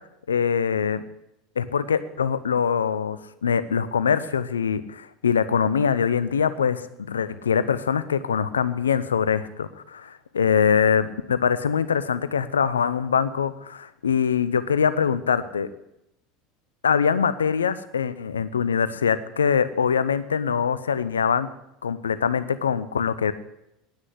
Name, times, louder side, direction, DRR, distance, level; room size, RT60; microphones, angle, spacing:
voice 1, 0.3-1.0 1.6-15.7 16.8-21.5 21.8-23.3, left 7 dB, 80° left, 15 dB, 0.6 m, -23 dB
9.9 x 9.7 x 8.3 m, 0.83 s
figure-of-eight pair, 75°, 0 cm